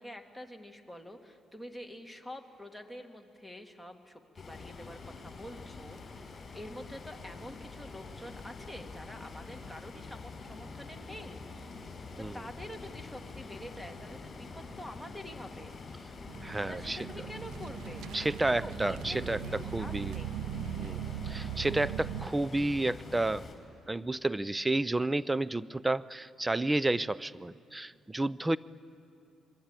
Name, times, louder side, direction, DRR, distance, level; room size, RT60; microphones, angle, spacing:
voice 1, 0.0-6.0 6.3-11.5 12.2-15.8 16.7-18.1 18.6-20.5, left 1 dB, ahead, 5 dB, 2.2 m, -47 dB
sound 1, 4.4-23.6, left 4 dB, 40° left, 5.4 m, -46 dB
sound 2, 16.3-22.3, right 10 dB, 85° right, 0.6 m, -40 dB
voice 2, 16.4-17.0 18.1-20.1 20.8-23.5 23.9-28.6, right 2 dB, 15° right, 19 dB, 0.5 m, -31 dB
sound 3, 17.2-23.5, right 2 dB, 65° right, 7.8 m, -50 dB
25.0 x 22.5 x 9.0 m, 2.6 s
cardioid pair, 90°, 0 cm